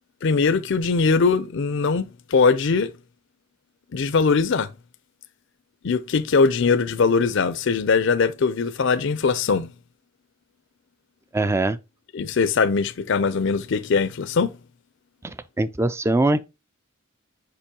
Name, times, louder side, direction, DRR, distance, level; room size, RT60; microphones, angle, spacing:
voice 1, 0.2-2.9 3.9-4.7 5.8-9.7 12.1-14.5, left 4 dB, 55° left, 0.4 m, -21 dB
voice 2, 11.3-11.8 15.2-16.4, right 2 dB, 10° right, 0.3 m, -22 dB
6.8 x 5.3 x 2.8 m
head